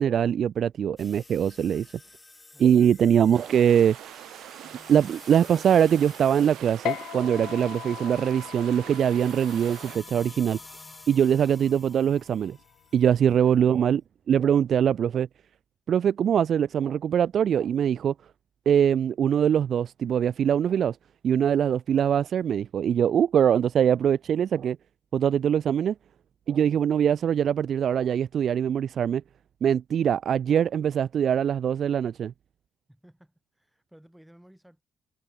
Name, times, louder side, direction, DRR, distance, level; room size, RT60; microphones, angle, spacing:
voice 1, 0.0-1.9 2.6-4.0 4.9-10.6 11.1-12.6 12.9-14.0 14.3-15.3 15.9-18.1 18.7-21.0 21.2-24.8 25.1-25.9 26.5-29.2 29.6-32.3, right 8 dB, 60° right, 0.3 m, -22 dB
sound 1, 1.0-13.2, left 2 dB, 20° left, 2.8 m, -50 dB
sound 2, 3.3-10.0, right 13 dB, 80° right, 2.0 m, -44 dB
sound 3, 6.9-13.6, left 13 dB, 80° left, 0.7 m, -40 dB
voice 2, 32.9-34.8, equal, 5° right, 7.9 m, -55 dB
cardioid pair, 90°, 0 cm